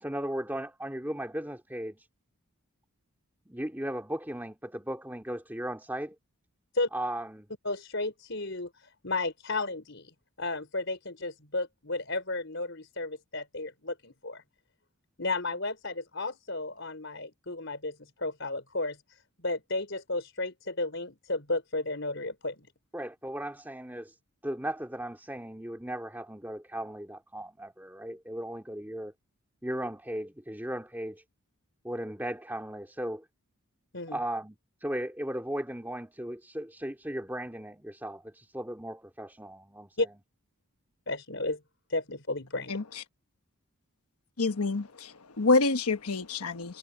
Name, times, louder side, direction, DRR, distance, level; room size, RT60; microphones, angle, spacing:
voice 1, 0.0-2.1 3.5-6.1 6.9-7.5 22.9-24.2 24.4-29.1 29.6-31.2 31.8-33.2 34.1-40.1, right 1 dB, 10° right, 2.3 m, -36 dB
voice 2, 7.6-14.4 15.2-22.7 33.9-34.2 40.0-40.1 41.1-41.6 41.9-42.7, left 2 dB, 55° left, 5.1 m, -33 dB
voice 3, 42.7-43.0 44.4-46.8, left 3 dB, 90° left, 1.2 m, -27 dB
head